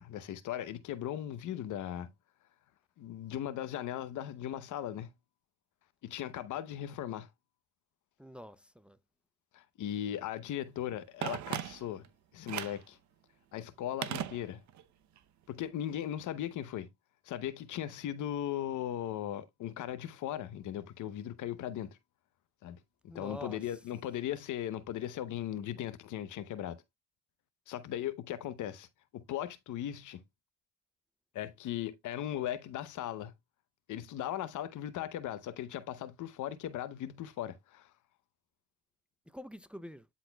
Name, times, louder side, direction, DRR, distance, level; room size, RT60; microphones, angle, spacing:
voice 1, 0.0-2.1 3.0-5.1 6.0-7.3 9.5-12.0 12.3-13.0 13.5-14.6 15.5-16.9 17.2-22.0 22.6-22.8 23.0-26.8 27.7-28.9 29.1-30.2 31.3-33.3 33.9-37.9, left 11 dB, 80° left, 0.8 m, -38 dB
voice 2, 8.2-9.0 23.1-23.6 39.3-40.1, left 1 dB, 5° right, 0.5 m, -46 dB
Telephone, 11.2-12.1 12.5-12.9 14.0-14.9 15.2-15.3, right 11 dB, 70° right, 0.8 m, -38 dB
12.5 x 4.1 x 2.3 m
cardioid pair, 90°, 30 cm